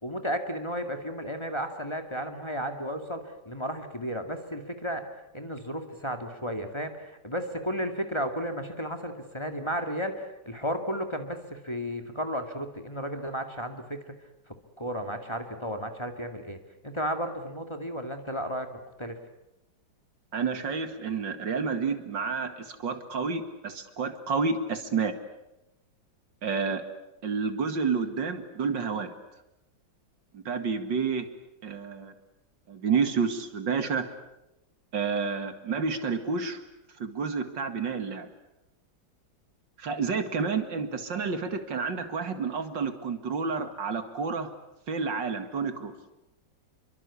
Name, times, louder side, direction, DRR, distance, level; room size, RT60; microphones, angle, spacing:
voice 1, 0.0-5.0 5.3-14.1 14.8-16.6 16.8-18.7 19.0-19.2, equal, 15° left, 5 dB, 2.2 m, -33 dB
voice 2, 20.3-25.2 26.4-26.8 27.2-29.1 30.3-31.3 31.6-32.1 32.7-34.1 34.9-36.6 37.0-38.3 39.8-44.5 44.9-45.9, right 5 dB, 70° right, 8 dB, 2.7 m, -30 dB
28.0 x 23.5 x 8.4 m, 0.90 s
omnidirectional pair, 2.1 m